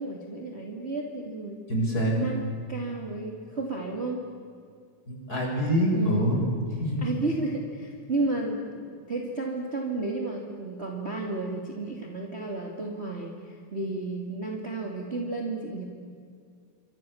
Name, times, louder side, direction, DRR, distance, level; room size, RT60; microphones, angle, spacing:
voice 1, 0.0-1.6 2.2-4.2 5.9-6.3 7.0-15.9, right 2 dB, 20° right, 0 dB, 2.7 m, -32 dB
voice 2, 1.7-2.2 5.1-6.4 6.8-7.0, equal, 30° left, 0 dB, 6.7 m, -25 dB
27.0 x 25.5 x 7.2 m, 2.2 s
omnidirectional pair, 3.4 m